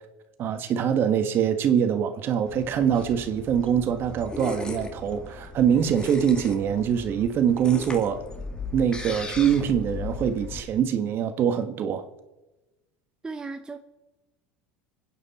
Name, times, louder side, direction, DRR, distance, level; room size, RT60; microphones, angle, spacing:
voice 1, 0.4-8.2 8.7-12.0, right 8 dB, 45° right, 8 dB, 1.6 m, -24 dB
sound 1, 2.5-10.6, left 3 dB, 15° left, 2.1 m, -37 dB
voice 2, 13.2-13.8, right 4 dB, 15° right, 6 dB, 0.8 m, -35 dB
25.5 x 9.5 x 4.3 m, 1.1 s
supercardioid pair, 110°, 5 cm